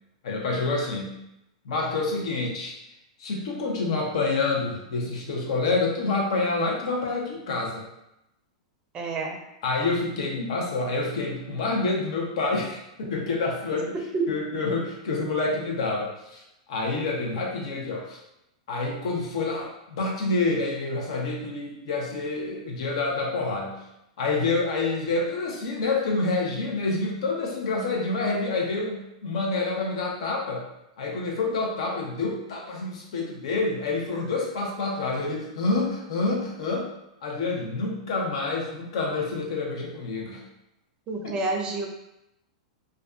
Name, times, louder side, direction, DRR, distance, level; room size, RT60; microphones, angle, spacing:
voice 1, 0.2-1.2 1.6-2.8 3.2-7.9 9.6-14.0 14.3-16.4 16.7-18.2 18.7-23.8 24.2-30.6 31.0-36.9 37.2-40.4 41.2-41.4, left 3 dB, 70° left, -1 dB, 0.7 m, -27 dB
voice 2, 8.9-9.4 10.4-10.5 14.1-14.3 41.1-41.9, right 3 dB, 30° right, 1 dB, 0.5 m, -28 dB
2.4 x 2.3 x 2.4 m, 0.87 s
hypercardioid pair, 130°, 4 cm